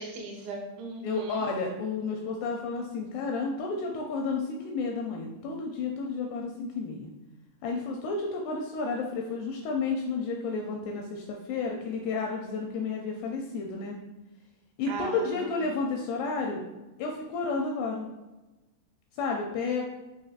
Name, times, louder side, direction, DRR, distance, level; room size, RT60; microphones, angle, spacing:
voice 1, 0.0-1.5 14.9-15.5, right 3 dB, 85° right, 0 dB, 3.1 m, -38 dB
voice 2, 1.0-7.1 7.6-14.0 14.8-16.6 17.0-18.1 19.1-19.8, left 4 dB, 85° left, 0 dB, 2.3 m, -31 dB
7.2 x 2.7 x 2.4 m, 1.1 s
omnidirectional pair, 5.0 m